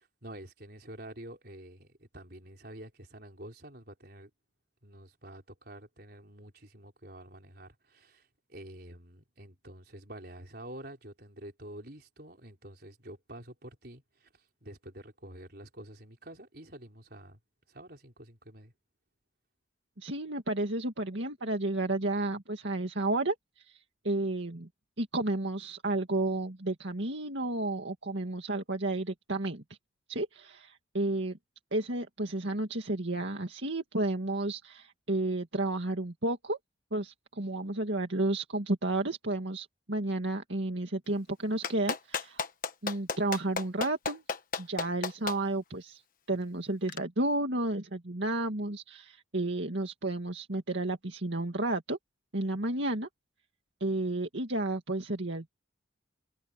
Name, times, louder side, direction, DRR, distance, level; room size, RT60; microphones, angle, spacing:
voice 1, 0.0-4.3 4.8-17.4 17.7-18.7, right 1 dB, 50° right, 5.1 m, -48 dB
voice 2, 20.0-23.8 24.0-24.7 25.0-29.6 30.1-31.4 31.7-36.6 36.9-42.4 42.8-44.2 44.6-46.0 46.3-52.0 52.3-53.1 53.8-55.5, right 2 dB, 70° right, 2.1 m, -32 dB
Clapping, 41.6-45.4 46.9-47.0, left 4 dB, 45° left, 1.3 m, -33 dB
head